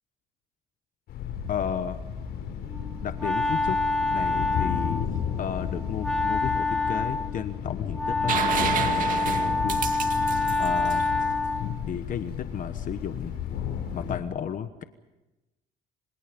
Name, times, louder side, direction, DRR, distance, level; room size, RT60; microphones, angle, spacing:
Thunder, 1.1-14.2, left 8 dB, 75° left, 5.4 m, -33 dB
voice 1, 1.5-2.0 3.0-3.8 4.1-5.1 5.4-9.8 10.6-11.0 11.9-13.4 13.9-14.8, left 9 dB, 50° left, 10 dB, 1.2 m, -33 dB
Wind instrument woodwind instrument, 2.7-11.8, left 3 dB, 5° left, 2.4 m, -27 dB
sound 1, 8.3-12.0 13.9-14.0, right 8 dB, 55° right, 2.1 m, -30 dB
27.0 x 27.0 x 5.3 m, 1.0 s
cardioid pair, 110°, 17 cm